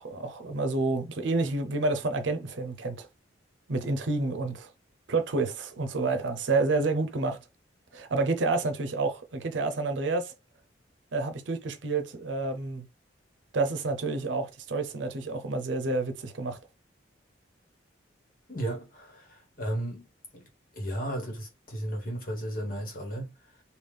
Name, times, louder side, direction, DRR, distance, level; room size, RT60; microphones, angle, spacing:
voice 1, 0.0-3.1 3.7-4.7 5.1-7.4 7.9-10.3 11.1-12.9 13.5-16.6, right 3 dB, 75° right, 0.6 m, -29 dB
voice 2, 18.5-20.1 20.3-20.5 20.7-23.6, right 1 dB, 45° left, 1.2 m, -34 dB
3.5 x 2.3 x 3.3 m
head